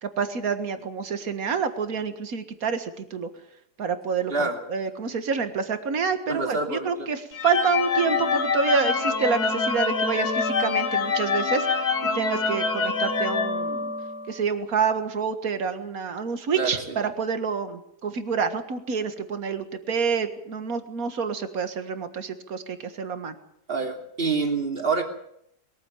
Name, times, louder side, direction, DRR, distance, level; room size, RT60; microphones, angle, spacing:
voice 1, 0.0-3.3 3.8-11.9 12.1-13.9 14.3-23.4, right 5 dB, 60° right, 9 dB, 2.1 m, -28 dB
voice 2, 6.3-7.1 16.5-17.0 23.7-25.0, right 4 dB, 35° right, 3 dB, 3.2 m, -27 dB
sound 1, 7.3-14.3, left 4 dB, 75° left, 2.3 m, -25 dB
22.0 x 14.5 x 9.2 m, 0.72 s
omnidirectional pair, 1.7 m